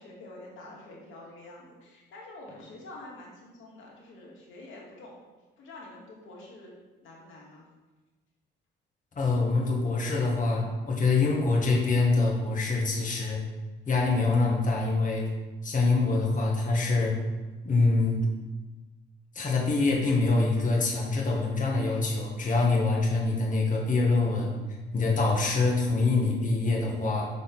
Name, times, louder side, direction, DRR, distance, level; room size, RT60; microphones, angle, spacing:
voice 1, 0.0-5.1 5.6-6.7 7.0-7.7, left 2 dB, 80° left, -2 dB, 2.3 m, -47 dB
voice 2, 9.1-13.4 13.9-15.3 15.6-17.1 17.6-18.3 19.3-24.6 24.9-27.3, left 3 dB, 40° left, -2 dB, 1.7 m, -25 dB
6.5 x 6.4 x 6.1 m, 1.2 s
cardioid pair, 90°, 20 cm